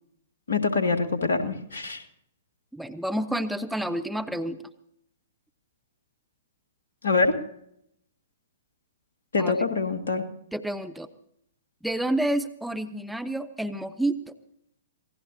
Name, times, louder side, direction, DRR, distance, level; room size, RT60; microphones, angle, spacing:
voice 1, 0.5-2.0 7.0-7.4 9.3-10.2, left 4 dB, 65° left, 6 dB, 2.1 m, -24 dB
voice 2, 2.7-4.6 9.4-9.5 10.5-11.1 11.8-14.2, right 1 dB, ahead, 7 dB, 0.8 m, -29 dB
27.0 x 18.5 x 2.8 m, 0.73 s
figure-of-eight pair, 115°, 0 cm